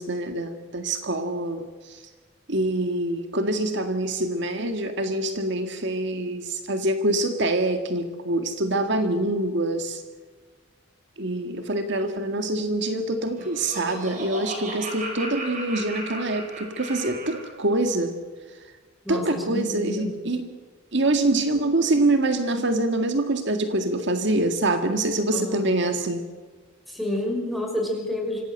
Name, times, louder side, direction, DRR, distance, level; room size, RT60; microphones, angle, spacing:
voice 1, 0.0-2.0 2.5-10.0 11.2-18.2 19.1-20.5 20.9-26.2, right 2 dB, 60° right, 7 dB, 1.9 m, -25 dB
Laughter, 13.1-17.5, right 2 dB, 40° right, 7.6 m, -36 dB
voice 2, 19.0-20.2 25.3-25.8 26.9-28.4, left 1 dB, ahead, 2 dB, 5.9 m, -29 dB
26.0 x 17.5 x 8.0 m, 1.4 s
head